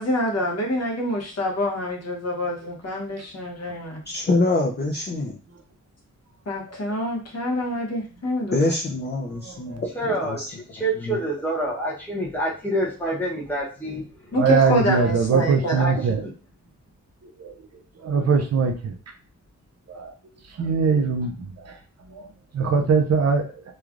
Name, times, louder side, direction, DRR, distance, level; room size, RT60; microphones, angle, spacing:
voice 1, 0.0-4.0 6.5-8.6 14.3-15.9, left 1 dB, 55° left, 0.9 m, -26 dB
voice 2, 4.1-5.4 8.5-9.9 10.2-10.5 11.1-11.2, left 2 dB, 35° left, 0.4 m, -24 dB
voice 3, 9.4-9.8 14.4-16.2 17.4-17.5 18.0-19.0 19.9-20.1 20.6-21.7 22.1-22.3 22.5-23.5, right 5 dB, 60° right, 0.5 m, -21 dB
voice 4, 9.9-14.0 15.8-15.9 16.2-16.3, right 1 dB, 5° left, 0.8 m, -27 dB
3.1 x 2.3 x 2.4 m
wide cardioid pair, 135°, 30 cm